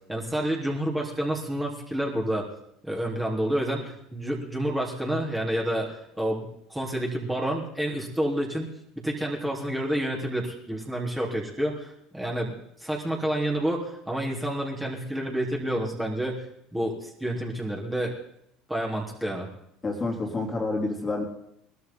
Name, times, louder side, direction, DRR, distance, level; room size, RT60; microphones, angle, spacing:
voice 1, 0.1-2.5 2.8-8.7 9.0-16.5 16.7-18.1 18.7-19.5, right 1 dB, 10° right, -2 dB, 3.9 m, -29 dB
voice 2, 19.8-21.2, left 3 dB, 25° left, 0 dB, 3.3 m, -28 dB
20.5 x 13.0 x 4.0 m, 0.76 s
hypercardioid pair, 75°, 0 cm